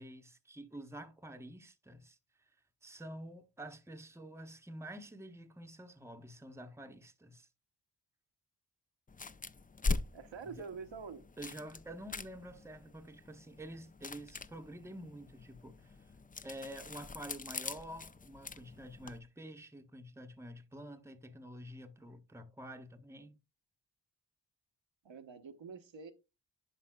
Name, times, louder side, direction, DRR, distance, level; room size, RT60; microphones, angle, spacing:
voice 1, 0.0-2.2 2.8-7.5 10.5-10.6 11.4-16.1 16.4-23.4, right 1 dB, 5° right, 0.8 m, -48 dB
sound 1, 9.1-19.2, left 3 dB, 20° left, 0.4 m, -42 dB
voice 2, 10.1-11.2 25.0-26.1, right 5 dB, 80° right, 0.9 m, -46 dB
10.0 x 5.4 x 2.2 m
wide cardioid pair, 60°, 45 cm